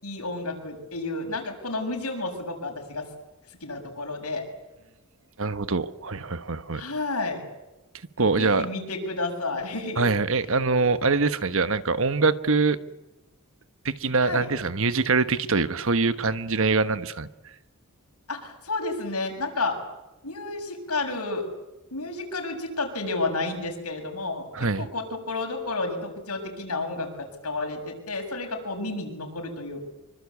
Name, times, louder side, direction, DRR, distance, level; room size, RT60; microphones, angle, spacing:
voice 1, 0.0-3.1 3.6-4.4 6.7-7.4 8.4-10.1 14.2-14.5 18.3-19.8 20.2-21.5 21.9-24.5 24.8-29.9, left 2 dB, 85° left, 7.3 m, -31 dB
voice 2, 5.4-6.8 8.2-8.7 10.0-12.8 13.8-17.3 24.5-24.9, right 4 dB, 60° right, 1.3 m, -24 dB
26.0 x 24.5 x 8.5 m
head